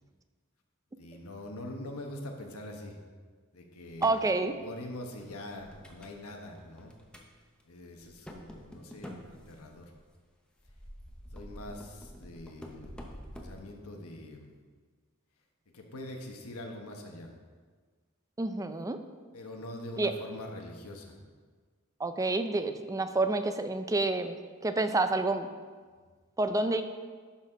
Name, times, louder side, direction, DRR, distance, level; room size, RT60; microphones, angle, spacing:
voice 1, 1.0-3.0 3.5-6.9 7.7-9.9 11.3-14.5 15.7-17.3 19.3-21.2, left 1 dB, 80° left, 2 dB, 1.2 m, -44 dB
sound 1, 3.9-4.3 4.9-6.2 6.6-7.3 7.6-7.7 8.0-10.0 10.6-13.6, equal, 5° left, 0.8 m, -47 dB
voice 2, 4.0-4.6 18.4-19.0 20.0-20.1 22.0-24.4 24.6-25.5 26.4-26.8, right 2 dB, 15° right, 9 dB, 0.4 m, -28 dB
11.5 x 4.2 x 5.1 m, 1.5 s
head